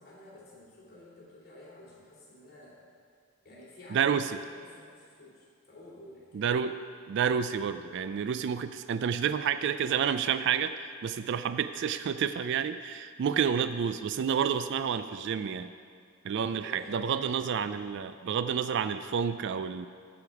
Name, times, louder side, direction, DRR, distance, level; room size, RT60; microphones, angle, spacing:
voice 1, 0.0-2.8 3.4-6.5 16.6-17.1, left 1 dB, 50° left, -5 dB, 2.7 m, -51 dB
voice 2, 3.9-4.2 6.3-6.7 7.1-15.7 16.2-19.9, right 7 dB, 60° right, 11 dB, 0.3 m, -29 dB
14.5 x 5.1 x 4.7 m, 2.2 s
head